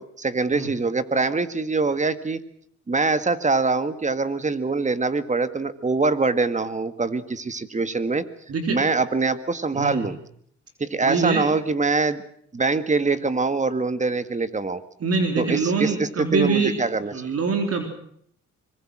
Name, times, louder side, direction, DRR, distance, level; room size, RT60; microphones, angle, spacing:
voice 1, 0.0-2.4 2.9-8.3 8.7-10.2 10.8-12.2 12.5-14.8 15.4-17.1, right 3 dB, 25° right, 12 dB, 1.8 m, -24 dB
voice 2, 9.7-10.1 11.0-11.5 15.0-16.8 17.1-17.8, right 4 dB, 50° right, 5 dB, 3.5 m, -24 dB
25.0 x 22.0 x 6.2 m, 0.66 s
cardioid pair, 90°, 30 cm